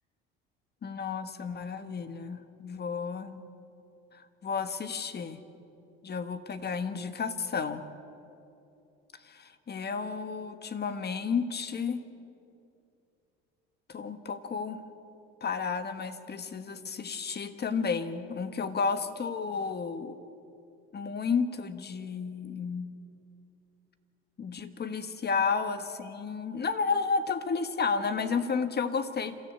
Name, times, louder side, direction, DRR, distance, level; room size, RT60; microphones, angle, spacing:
voice 1, 0.8-3.5 4.1-5.4 6.0-7.8 9.2-12.0 13.9-14.8 15.4-20.2 20.9-22.9 24.4-29.4, left 5 dB, 35° left, 10 dB, 1.5 m, -32 dB
28.0 x 13.5 x 8.4 m, 2.7 s
supercardioid pair, 80°, 29 cm